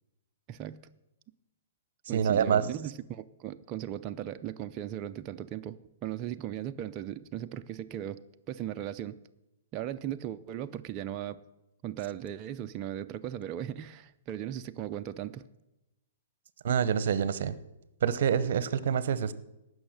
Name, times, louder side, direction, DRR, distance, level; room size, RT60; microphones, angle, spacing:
voice 1, 0.5-0.8 2.1-9.2 9.7-11.4 11.8-15.4, right 11 dB, 30° right, 8 dB, 0.5 m, -37 dB
voice 2, 2.1-2.6 16.6-17.6 18.0-19.3, right 8 dB, 65° right, 16 dB, 0.8 m, -26 dB
17.5 x 6.3 x 6.5 m, 0.93 s
hypercardioid pair, 145°, 0 cm